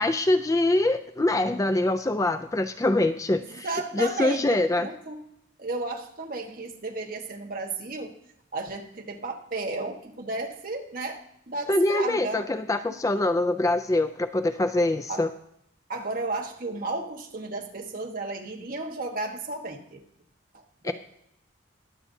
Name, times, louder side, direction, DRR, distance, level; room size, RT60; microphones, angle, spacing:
voice 1, 0.0-3.7 3.9-4.9 11.7-15.3 20.8-20.9, left 2 dB, 15° left, 10 dB, 0.3 m, -24 dB
voice 2, 3.5-5.2 5.6-8.1 8.5-11.2 11.5-12.4 15.1-15.2 15.9-20.0 20.5-20.9, right 3 dB, 45° right, 2 dB, 1.3 m, -33 dB
21.5 x 7.8 x 2.7 m, 0.74 s
head